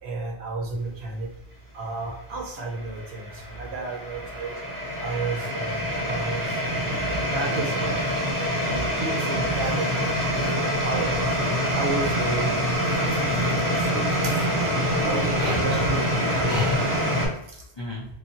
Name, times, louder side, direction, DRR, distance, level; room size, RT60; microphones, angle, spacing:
voice 1, 0.0-1.3 1.7-4.5 5.0-8.1 8.5-11.4 11.7-13.2 13.9-14.4 15.0-16.6 17.5-17.6, right 3 dB, 75° right, 0 dB, 0.9 m, -32 dB
sound 1, 2.6-17.3, equal, 20° right, 0.8 m, -25 dB
voice 2, 15.4-17.3 17.8-18.1, left 1 dB, 45° left, -4 dB, 0.3 m, -33 dB
2.6 x 2.3 x 2.7 m, 0.76 s
omnidirectional pair, 1.1 m